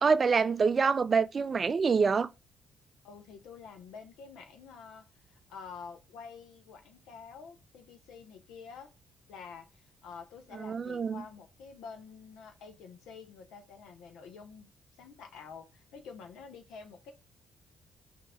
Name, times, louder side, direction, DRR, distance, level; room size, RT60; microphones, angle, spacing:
voice 1, 0.0-2.3 10.5-11.2, right 5 dB, 40° right, 0.3 m, -26 dB
voice 2, 3.0-8.9 9.3-14.7 15.0-17.1, left 6 dB, 85° left, 0.8 m, -48 dB
3.2 x 2.8 x 4.2 m
cardioid pair, 90°, 0 cm